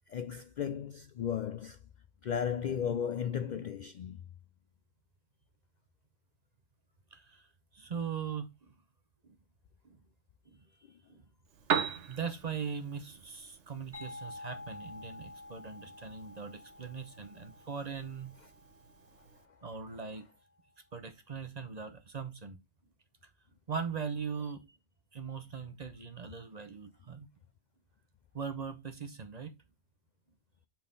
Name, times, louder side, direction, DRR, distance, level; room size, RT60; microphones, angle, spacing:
voice 1, 0.1-1.8 2.2-4.2, left 8 dB, 65° left, 0.4 m, -35 dB
voice 2, 7.1-7.5 7.7-8.8 9.2-9.4 9.8-10.0 10.5-10.6 11.1-11.3 11.7-18.3 19.6-20.2 20.9-22.6 23.7-24.6 25.1-27.3 28.3-29.5, right 6 dB, 40° right, 0.8 m, -40 dB
Piano, 11.4-19.5, right 7 dB, 75° right, 1.1 m, -41 dB
sound 1, 13.9-19.4, left 2 dB, 10° right, 2.0 m, -50 dB
5.5 x 4.4 x 5.4 m
omnidirectional pair, 1.2 m